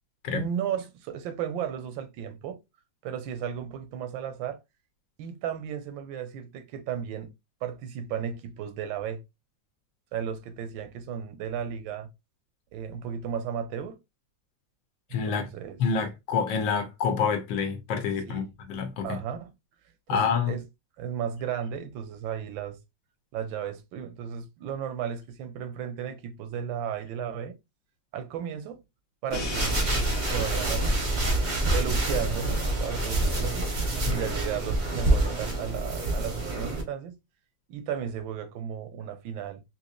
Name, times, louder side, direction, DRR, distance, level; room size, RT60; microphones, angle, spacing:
voice 1, 0.3-2.6 3.0-4.6 5.2-7.3 7.6-9.2 10.1-12.1 12.7-14.0 15.3-15.8 18.3-18.5 19.0-19.5 20.1-20.6 21.0-22.8 23.3-27.6 28.1-28.8 29.2-31.2 31.7-33.8 34.0-37.2 37.7-39.6, right 8 dB, 85° right, 1.3 m, -34 dB
voice 2, 15.1-15.4 15.8-19.2 20.1-20.6 34.1-34.2, left 6 dB, 80° left, 1.6 m, -27 dB
Crash cymbal, 29.3-33.1, left 4 dB, 50° left, 1.2 m, -41 dB
sound 1, 29.3-36.8, right 2 dB, 40° right, 0.6 m, -27 dB
4.1 x 2.8 x 2.3 m
omnidirectional pair, 2.1 m